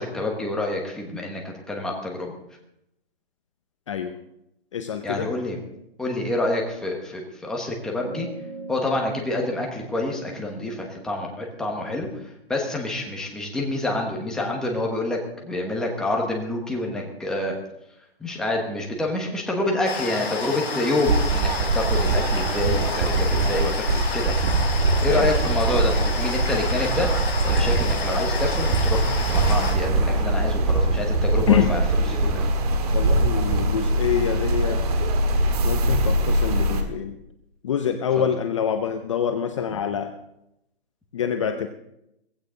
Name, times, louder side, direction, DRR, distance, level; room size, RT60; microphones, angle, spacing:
voice 1, 0.0-2.3 5.0-5.6 6.0-8.3 8.7-17.5 18.2-24.7 25.0-27.1 27.4-32.5, left 2 dB, ahead, 0 dB, 1.2 m, -27 dB
voice 2, 4.7-5.3 25.1-25.3 31.5-31.7 32.9-34.8 35.6-37.2 37.6-40.1 41.1-41.7, left 8 dB, 30° left, 7 dB, 0.7 m, -25 dB
sound 1, 7.9-12.8, right 3 dB, 60° right, 3.5 m, -42 dB
sound 2, 19.8-29.7, left 4 dB, 60° left, 5.9 m, -31 dB
sound 3, 21.1-36.8, right 2 dB, 35° right, 2.0 m, -22 dB
17.0 x 15.5 x 3.8 m, 0.81 s
hypercardioid pair, 165°, 32 cm